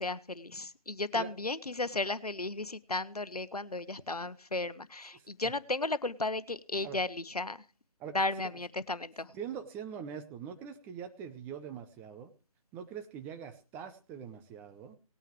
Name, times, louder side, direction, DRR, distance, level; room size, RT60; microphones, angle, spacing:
voice 1, 0.0-7.6 8.1-9.3, left 2 dB, 90° left, 16 dB, 1.0 m, -34 dB
voice 2, 5.1-5.5 6.8-7.0 8.0-8.2 8.4-8.5 9.3-12.3 12.7-15.0, right 8 dB, 10° right, 8 dB, 0.8 m, -43 dB
19.5 x 9.1 x 3.2 m, 0.34 s
figure-of-eight pair, 150°, 19 cm